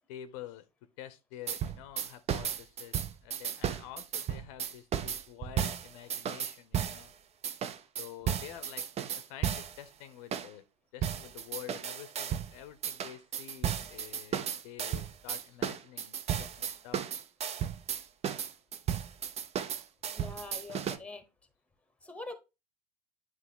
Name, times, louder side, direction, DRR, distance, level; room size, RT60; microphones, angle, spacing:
voice 1, 0.1-0.7 1.0-7.1 8.0-8.9 9.1-10.6 10.9-17.0, left 11 dB, 60° left, 0.7 m, -48 dB
sound 1, 1.5-7.1 7.4-9.8 10.3-10.5 11.0-12.5 12.8-21.0, right 9 dB, 30° right, 0.6 m, -34 dB
voice 2, 20.1-21.2 22.0-22.4, left 2 dB, 5° left, 1.1 m, -44 dB
9.0 x 3.2 x 3.7 m
figure-of-eight pair, 75°, 21 cm